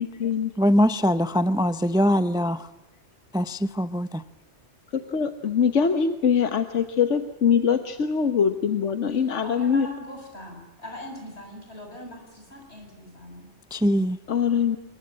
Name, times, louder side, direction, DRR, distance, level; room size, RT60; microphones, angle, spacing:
voice 1, 0.0-0.5 4.9-9.9 14.3-14.8, left 7 dB, 85° left, 9 dB, 1.5 m, -23 dB
voice 2, 0.6-2.7 3.3-4.2 13.7-14.2, equal, 5° right, 13 dB, 0.6 m, -22 dB
voice 3, 9.4-13.5, left 1 dB, 65° left, 2 dB, 7.9 m, -40 dB
26.5 x 22.5 x 7.5 m, 1.0 s
omnidirectional pair, 1.2 m